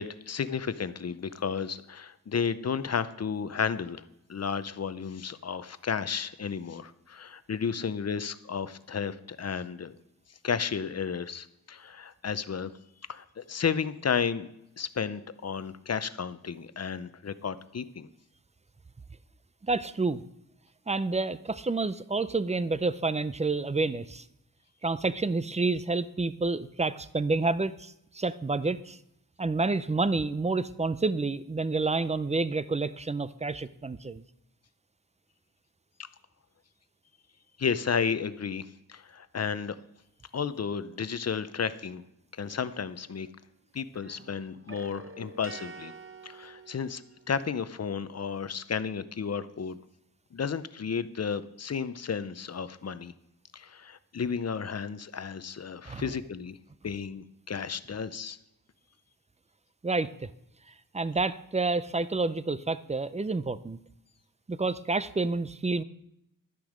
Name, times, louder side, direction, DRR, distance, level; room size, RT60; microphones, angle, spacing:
voice 1, 0.0-4.0 4.3-9.9 10.4-12.7 13.1-14.5 14.8-18.1 37.6-39.8 40.3-42.0 42.3-43.3 43.7-45.9 46.2-47.0 47.3-49.8 50.3-53.1 53.5-56.6 56.8-58.4, left 6 dB, 45° left, 14 dB, 0.7 m, -32 dB
voice 2, 19.7-20.2 20.9-24.2 24.8-29.0 29.4-34.2 55.9-56.1 59.8-60.3 60.9-63.8 64.5-65.8, right 3 dB, 20° right, 15 dB, 0.5 m, -29 dB
sound 1, 42.5-43.6 43.9-47.4, right 4 dB, 35° right, 0.9 m, -48 dB
12.0 x 9.4 x 5.1 m, 0.81 s
wide cardioid pair, 100°, 36 cm